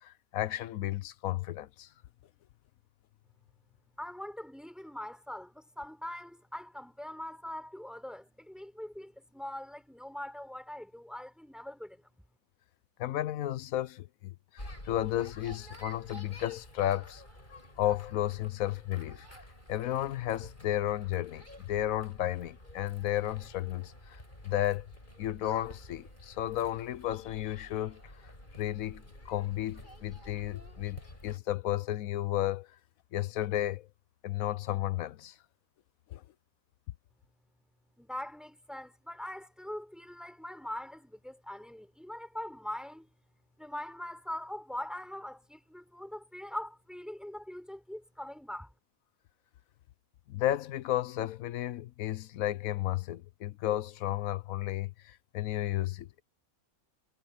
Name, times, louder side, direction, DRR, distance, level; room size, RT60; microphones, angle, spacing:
voice 1, 0.0-1.9 13.0-17.2 17.8-19.3 19.7-24.9 25.2-28.0 28.6-32.7 33.1-33.9 34.2-35.3 36.1-36.2 50.3-56.2, left 13 dB, 75° left, 1.0 m, -33 dB
voice 2, 4.0-12.0 38.0-43.1 43.6-48.7, left 1 dB, ahead, 5.0 m, -42 dB
sound 1, 14.6-31.4, left 1 dB, 35° left, 7.5 m, -50 dB
omnidirectional pair, 1.5 m